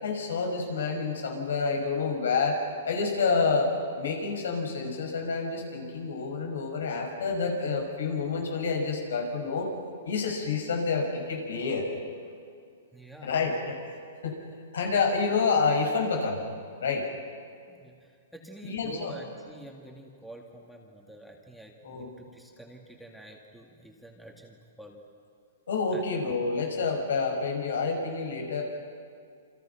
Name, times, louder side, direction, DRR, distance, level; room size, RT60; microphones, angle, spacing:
voice 1, 0.0-2.6 2.8-9.7 10.0-11.9 13.2-13.8 14.2-14.3 14.7-16.4 16.8-17.1 18.6-19.1 21.8-22.1 25.7-28.6, left 4 dB, 85° left, 2 dB, 6.7 m, -28 dB
voice 2, 12.9-13.3 17.7-25.0 25.9-26.0, right 1 dB, ahead, 0 dB, 2.2 m, -48 dB
28.5 x 27.0 x 6.0 m, 2.3 s
hypercardioid pair, 160°, 0 cm